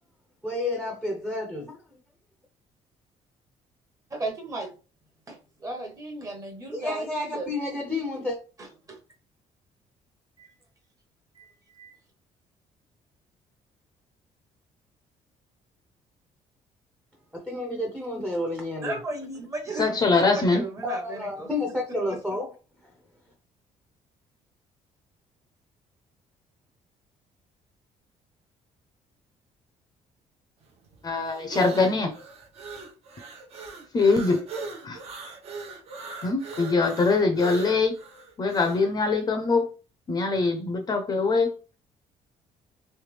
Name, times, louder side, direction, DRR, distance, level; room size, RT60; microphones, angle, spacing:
voice 1, 0.4-1.8 6.7-8.4 17.3-19.0 20.8-22.5, left 2 dB, 5° right, 0.7 m, -30 dB
voice 2, 4.1-4.7 5.3-5.4 5.6-7.5 8.9-9.0 10.4-10.5 11.4-12.0 18.8-21.5 22.1-22.2, right 2 dB, 25° right, 1.0 m, -35 dB
voice 3, 19.8-20.6 31.0-32.1 33.9-34.4 34.8-35.0 36.2-38.0 38.4-39.7 40.1-41.5, left 3 dB, 30° left, 0.7 m, -23 dB
sound 1, 30.6-38.9, right 4 dB, 55° right, 0.9 m, -39 dB
3.3 x 3.3 x 3.3 m
cardioid pair, 150°, 13 cm